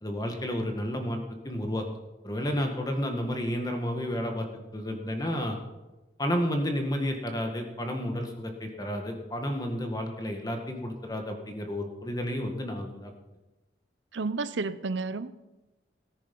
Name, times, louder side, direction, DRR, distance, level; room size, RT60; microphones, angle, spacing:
voice 1, 0.0-1.9 2.2-5.6 6.2-13.1, equal, 20° left, 4 dB, 1.8 m, -31 dB
voice 2, 14.1-15.3, right 3 dB, 80° right, 14 dB, 0.7 m, -31 dB
18.0 x 10.0 x 5.5 m, 1.1 s
head